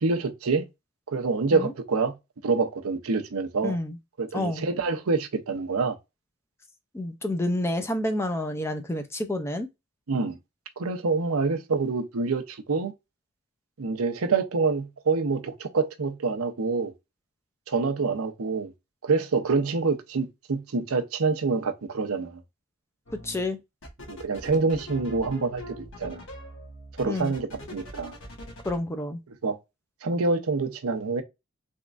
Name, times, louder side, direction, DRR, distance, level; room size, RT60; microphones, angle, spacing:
voice 1, 0.0-0.7 1.1-2.2 2.4-3.8 4.2-6.0 10.1-10.4 10.8-12.9 13.8-16.9 17.7-18.7 19.0-22.4 24.1-26.2 27.0-28.1 29.3-29.6 30.0-31.2, right 4 dB, 80° right, 0.7 m, -26 dB
voice 2, 3.6-4.0 4.3-4.7 6.9-9.7 23.2-23.6 27.0-27.3 28.6-29.2, left 1 dB, 10° left, 0.4 m, -29 dB
sound 1, 23.1-23.4 23.8-28.8, left 1 dB, 60° left, 1.2 m, -42 dB
3.6 x 3.0 x 2.4 m
head